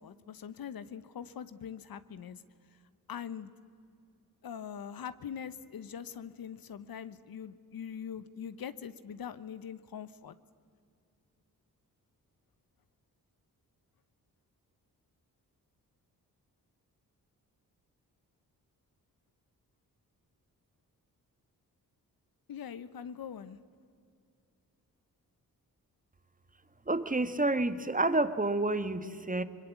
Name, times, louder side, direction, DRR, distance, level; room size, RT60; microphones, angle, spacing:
voice 1, 0.0-2.4 3.1-3.5 4.4-10.3 22.5-23.6, left 8 dB, 65° left, 14 dB, 1.1 m, -42 dB
voice 2, 26.9-29.4, right 2 dB, 20° right, 12 dB, 1.4 m, -29 dB
25.0 x 21.0 x 8.5 m, 2.4 s
cardioid pair, 50°, 38 cm